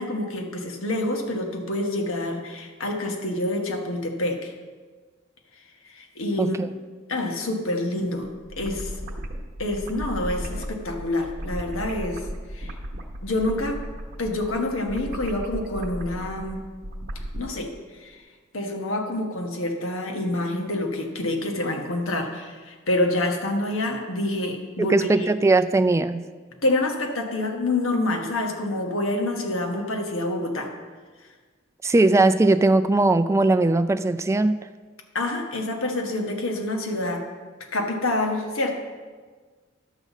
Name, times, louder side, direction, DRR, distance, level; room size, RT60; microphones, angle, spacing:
voice 1, 0.0-4.5 5.9-6.6 7.1-8.3 8.6-8.9 9.6-12.2 12.5-12.7 13.2-13.8 14.2-16.6 17.4-17.7 18.0-18.2 18.5-25.3 26.6-30.7 35.1-37.2 37.6-38.8, left 1 dB, 80° left, 2 dB, 1.3 m, -27 dB
sound 1, 8.2-17.5, equal, 50° right, 0.9 m, -35 dB
voice 2, 24.8-26.2 31.8-34.6, right 2 dB, 15° right, 10 dB, 0.3 m, -19 dB
11.0 x 4.1 x 7.2 m, 1.5 s
head